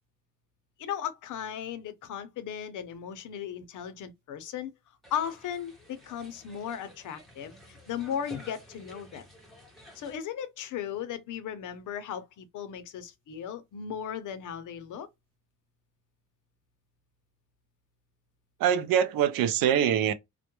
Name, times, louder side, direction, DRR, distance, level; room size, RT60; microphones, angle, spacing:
voice 1, 0.8-4.7 5.1-9.3 10.0-15.1, left 9 dB, 60° left, 0.6 m, -36 dB
sound 1, 5.0-10.2, left 2 dB, ahead, 0.7 m, -51 dB
voice 2, 18.6-20.1, right 9 dB, 75° right, 0.5 m, -24 dB
2.2 x 2.1 x 2.8 m
cardioid pair, 160°, 34 cm